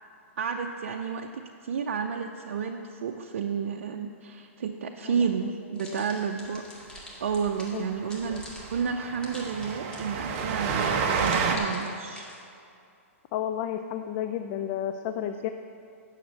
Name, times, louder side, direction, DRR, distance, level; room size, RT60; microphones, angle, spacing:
voice 1, 0.4-1.3 1.6-6.6 7.2-8.4 8.7-12.3, right 6 dB, 75° right, 3 dB, 0.6 m, -31 dB
sound 1, 5.8-10.4 11.1-12.4, left 1 dB, 10° left, 1.8 m, -46 dB
Train, 7.0-7.1 7.3-7.5 7.7-7.8 8.2-11.6, right 5 dB, 40° right, 1.1 m, -29 dB
voice 2, 13.3-15.5, left 10 dB, 35° left, 8 dB, 0.4 m, -32 dB
9.3 x 6.6 x 7.8 m, 2.5 s
hypercardioid pair, 140°, 8 cm